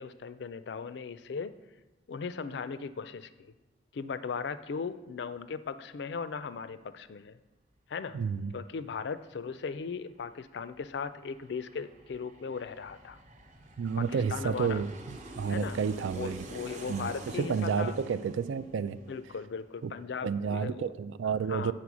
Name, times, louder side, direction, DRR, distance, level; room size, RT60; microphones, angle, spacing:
voice 1, 0.0-1.5 2.1-3.5 3.9-7.4 7.9-8.2 8.5-13.2 14.0-14.8 15.5-15.8 16.1-18.0 19.0-20.8 21.5-21.7, left 5 dB, 65° left, 14 dB, 0.4 m, -38 dB
voice 2, 8.1-8.5 13.8-16.5 16.9-19.0 19.8-19.9 20.2-21.7, right 6 dB, 85° right, 14 dB, 0.4 m, -31 dB
Aircraft, 8.3-8.4 8.7-20.0 20.3-20.4, right 1 dB, 40° right, 0.7 m, -49 dB
8.3 x 4.3 x 6.1 m, 1.1 s
head